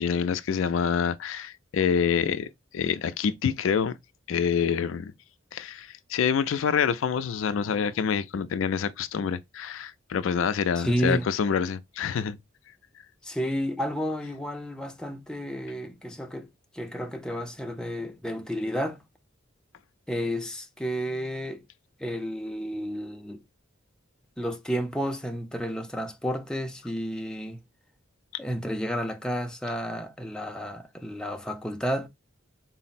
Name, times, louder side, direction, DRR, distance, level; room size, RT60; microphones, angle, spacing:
voice 1, 0.0-2.5 2.7-4.0 4.3-5.1 5.5-12.4, left 7 dB, 80° left, 0.4 m, -26 dB
voice 2, 10.8-11.3 13.2-16.5 16.7-19.0 20.1-21.6 22.0-23.4 24.4-27.6 28.4-32.1, equal, 5° left, 0.4 m, -31 dB
3.9 x 2.0 x 4.1 m
head